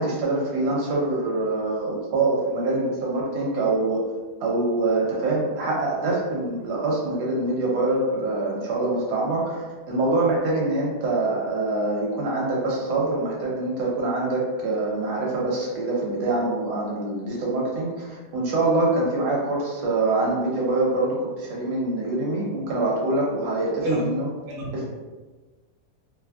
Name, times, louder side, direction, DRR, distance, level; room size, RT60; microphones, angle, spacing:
voice 1, 0.0-4.0 4.4-24.3 24.7-24.9, right 2 dB, 75° right, -3 dB, 1.2 m, -25 dB
voice 2, 24.5-24.8, right 2 dB, 55° right, -4 dB, 0.8 m, -27 dB
2.9 x 2.4 x 2.3 m, 1.3 s
omnidirectional pair, 1.8 m